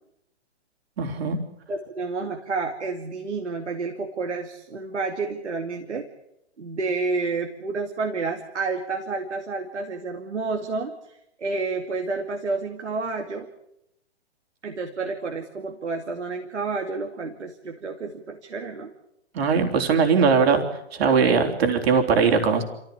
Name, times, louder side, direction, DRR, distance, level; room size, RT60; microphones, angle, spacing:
voice 1, 1.0-1.4 19.3-20.6 20.9-22.6, right 5 dB, 60° right, 4 dB, 3.8 m, -20 dB
voice 2, 1.7-6.1 6.6-13.5 14.6-18.9 21.5-21.6, right 4 dB, 85° right, 3 dB, 2.6 m, -30 dB
27.0 x 15.5 x 8.5 m, 0.82 s
hypercardioid pair, 125°, 34 cm